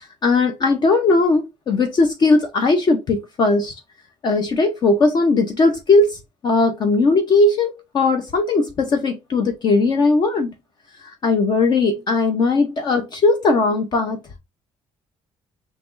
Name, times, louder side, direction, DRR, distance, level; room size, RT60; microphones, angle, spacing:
voice 1, 0.0-3.7 4.2-10.5 11.2-14.2, left 3 dB, 40° left, 0.6 m, -18 dB
5.8 x 3.0 x 2.5 m
cardioid pair, 155°, 11 cm